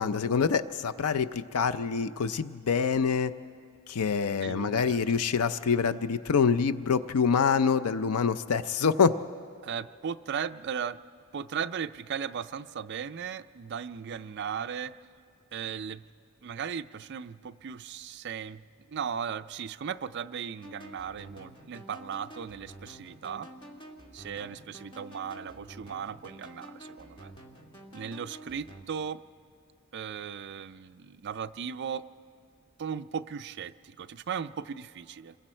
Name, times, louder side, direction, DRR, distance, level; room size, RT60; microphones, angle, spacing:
voice 1, 0.0-3.3 3.9-9.2, left 6 dB, 85° left, 13 dB, 0.5 m, -26 dB
voice 2, 4.4-5.3 9.6-11.0 11.3-15.0 15.5-16.0 16.4-18.6 18.9-23.5 24.1-27.3 27.9-29.2 29.9-32.0 32.8-35.4, right 7 dB, 50° right, 11 dB, 0.4 m, -37 dB
sound 1, 20.6-28.9, right 1 dB, 20° left, 1.6 m, -49 dB
28.0 x 21.5 x 4.4 m, 2.4 s
head